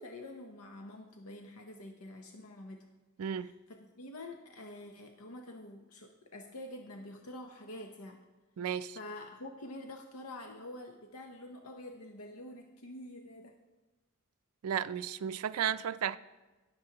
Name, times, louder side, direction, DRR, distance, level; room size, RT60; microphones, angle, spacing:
voice 1, 0.0-2.8 3.3-8.2 8.9-13.5, left 1 dB, 90° left, 0.7 m, -47 dB
voice 2, 3.2-3.5 8.6-9.0 14.6-16.2, right 9 dB, 90° right, 0.4 m, -33 dB
17.5 x 6.9 x 2.9 m
head